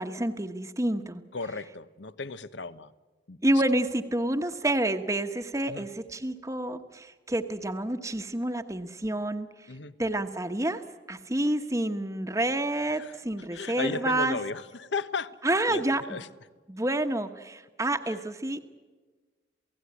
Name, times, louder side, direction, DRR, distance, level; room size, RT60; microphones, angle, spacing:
voice 1, 0.0-1.2 3.4-9.7 10.0-10.8 11.1-14.4 15.4-16.2 16.7-18.7, right 1 dB, 15° right, 6 dB, 1.2 m, -28 dB
voice 2, 1.3-2.9 3.3-3.4 5.7-5.9 9.7-9.9 12.9-13.2 13.5-16.3 18.0-18.1, left 4 dB, 75° left, 14 dB, 1.0 m, -35 dB
28.5 x 17.5 x 9.8 m, 1.3 s
head